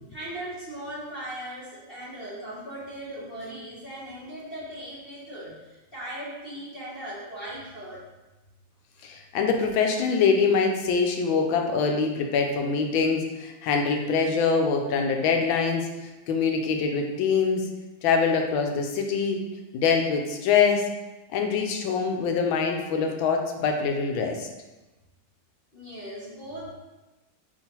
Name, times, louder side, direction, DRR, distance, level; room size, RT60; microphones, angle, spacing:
voice 1, 0.1-8.0 25.7-26.7, right 1 dB, 40° left, -7 dB, 0.9 m, -38 dB
voice 2, 9.0-17.7 18.0-19.4 19.7-20.8 21.3-24.5, left 5 dB, 90° left, 3 dB, 1.4 m, -24 dB
4.6 x 3.2 x 2.9 m, 1.1 s
omnidirectional pair, 2.1 m